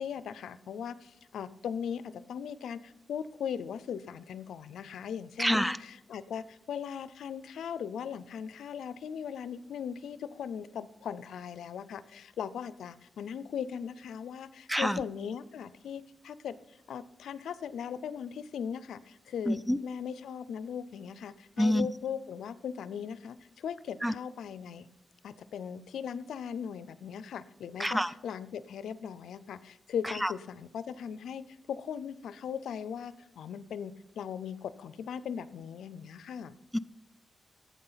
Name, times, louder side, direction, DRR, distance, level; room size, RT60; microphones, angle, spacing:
voice 1, 0.0-24.9 25.2-36.5, left 7 dB, 90° left, 15 dB, 0.4 m, -39 dB
voice 2, 5.4-5.8 14.7-15.0 19.5-19.8 21.6-21.9 24.0-24.1 27.8-28.1 30.2-30.3 36.7-36.8, equal, 5° right, 17 dB, 0.4 m, -27 dB
12.0 x 8.3 x 5.6 m, 0.96 s
cardioid pair, 75°, 0 cm